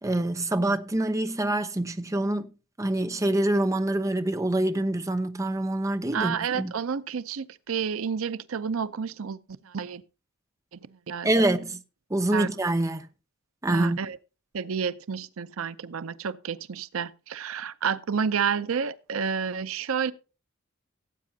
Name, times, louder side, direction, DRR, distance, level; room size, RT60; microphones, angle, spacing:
voice 1, 0.0-2.5 2.8-6.7 11.2-11.8 12.1-13.1 13.6-14.0, right 1 dB, 15° right, 0.6 m, -26 dB
voice 2, 6.1-9.4 9.6-10.0 10.7-11.5 12.3-12.5 13.7-14.2 14.5-20.1, right 6 dB, 85° right, 0.6 m, -30 dB
17.5 x 8.3 x 2.7 m
head